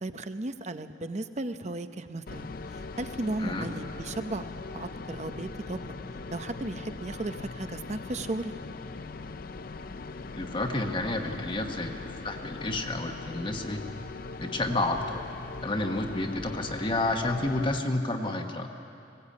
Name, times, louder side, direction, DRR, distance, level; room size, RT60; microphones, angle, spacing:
voice 1, 0.0-2.5 2.7-4.5 4.7-5.8 6.3-8.5, right 2 dB, 40° right, 10 dB, 0.8 m, -35 dB
sound 1, 2.3-17.8, left 3 dB, 50° left, 0.5 m, -40 dB
voice 2, 10.3-11.9 12.2-13.8 14.4-15.2 15.6-18.7, left 2 dB, 30° left, 4 dB, 1.2 m, -30 dB
20.5 x 17.5 x 8.5 m, 2.6 s
head